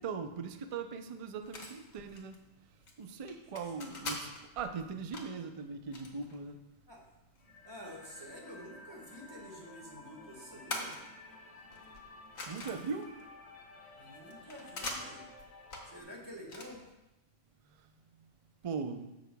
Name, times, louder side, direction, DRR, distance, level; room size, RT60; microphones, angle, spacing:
voice 1, 0.0-2.4 3.0-6.6 12.5-13.1 18.6-19.1, right 5 dB, 60° right, 7 dB, 0.3 m, -40 dB
sound 1, 1.4-17.1, left 2 dB, 85° left, 1.7 m, -46 dB
voice 2, 3.8-4.1 6.9-7.0 7.6-11.0 13.9-15.3 15.9-16.8, equal, 20° right, -2 dB, 1.7 m, -49 dB
sound 2, 7.4-16.0, left 2 dB, 55° left, 1.4 m, -53 dB
15.0 x 6.1 x 2.3 m, 0.97 s
omnidirectional pair, 1.4 m